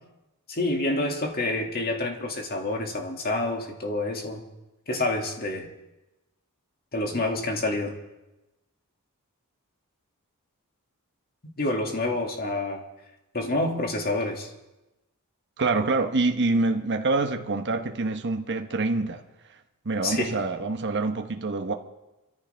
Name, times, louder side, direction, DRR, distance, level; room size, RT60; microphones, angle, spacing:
voice 1, 0.5-4.4 4.9-5.7 6.9-8.0 11.6-12.8 13.3-14.5 20.0-20.4, left 2 dB, 45° left, 2 dB, 2.2 m, -28 dB
voice 2, 15.6-19.2 19.8-21.7, right 3 dB, 50° right, 5 dB, 1.0 m, -26 dB
26.5 x 14.0 x 3.4 m, 1.0 s
head